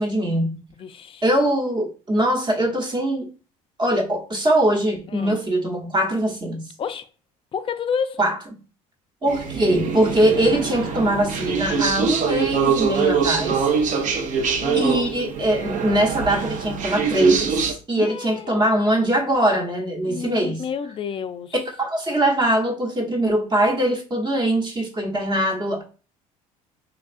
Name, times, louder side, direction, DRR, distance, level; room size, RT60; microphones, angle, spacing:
voice 1, 0.0-0.6 1.2-3.3 3.8-6.6 8.2-8.4 9.2-13.7 14.7-20.6 21.8-25.8, right 1 dB, 25° right, 1.0 m, -22 dB
voice 2, 0.8-1.2 5.1-5.4 6.8-7.1 7.5-8.2 14.6-15.0 18.0-18.8 20.1-21.6, left 6 dB, 30° left, 0.4 m, -30 dB
sound 1, 9.3-17.7, right 6 dB, 45° right, 0.6 m, -24 dB
3.2 x 2.3 x 2.5 m
hypercardioid pair, 75°, 18 cm